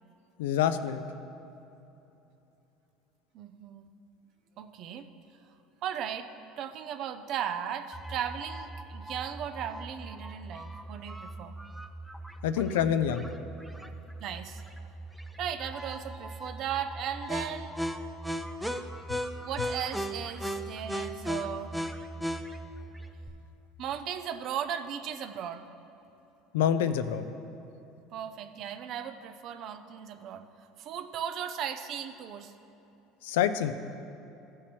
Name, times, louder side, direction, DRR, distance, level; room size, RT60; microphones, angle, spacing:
voice 1, 0.4-1.0 12.4-13.3 26.5-27.3 33.2-33.7, left 9 dB, 90° left, 11 dB, 0.4 m, -26 dB
voice 2, 3.3-3.9 4.6-5.1 5.8-6.3 6.6-11.6 13.8-13.9 14.2-14.9 15.4-17.7 19.4-21.8 23.8-25.6 28.1-30.4 30.8-32.5, right 9 dB, 55° right, 9 dB, 0.6 m, -37 dB
sound 1, 7.9-23.3, equal, ahead, 0.5 m, -38 dB
14.5 x 5.5 x 3.4 m, 2.9 s
supercardioid pair, 105°, 0 cm